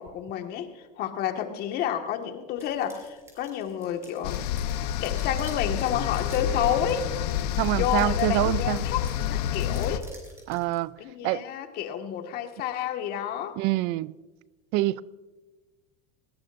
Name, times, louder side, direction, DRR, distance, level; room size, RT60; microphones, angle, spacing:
voice 1, 0.0-4.4 5.0-7.2 7.7-10.1 11.0-13.6, left 9 dB, 50° left, 1.8 m, -30 dB
sound 1, 2.6-10.8, right 1 dB, 15° right, 6.3 m, -52 dB
sound 2, 4.2-10.0, left 10 dB, 80° left, 0.9 m, -28 dB
voice 2, 7.6-8.9 10.5-10.9 11.2-11.4 13.6-14.1 14.7-15.0, right 17 dB, 55° right, 0.5 m, -25 dB
21.0 x 18.5 x 2.6 m
supercardioid pair, 115°, 20 cm